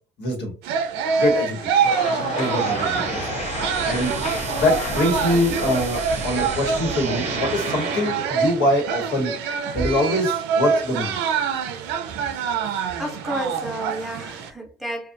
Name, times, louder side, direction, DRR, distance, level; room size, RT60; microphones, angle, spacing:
voice 1, 0.2-0.5 1.2-1.7 2.4-3.4 3.8-4.2 4.5-9.4 9.7-11.2, left 1 dB, 80° left, 1.2 m, -23 dB
sound 1, 0.6-14.5, right 6 dB, 90° right, 0.4 m, -26 dB
sound 2, 1.8-7.2, left 5 dB, 45° left, 0.4 m, -33 dB
sound 3, 2.0-8.4, right 4 dB, 45° right, 0.6 m, -31 dB
voice 2, 13.0-15.1, right 1 dB, ahead, 0.7 m, -31 dB
2.5 x 2.3 x 2.5 m
cardioid pair, 110°, 17 cm